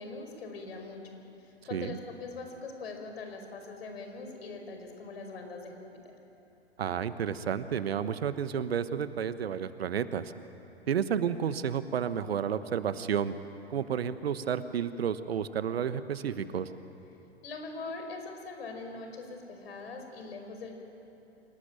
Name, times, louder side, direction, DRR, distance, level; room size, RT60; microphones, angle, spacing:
voice 1, 0.0-5.9 17.4-20.7, left 3 dB, 65° left, 4 dB, 5.2 m, -42 dB
voice 2, 6.8-10.3 10.9-13.3 13.7-16.7, right 8 dB, 65° right, 13 dB, 1.2 m, -31 dB
27.0 x 18.0 x 9.1 m, 2.9 s
figure-of-eight pair, 110°, 33 cm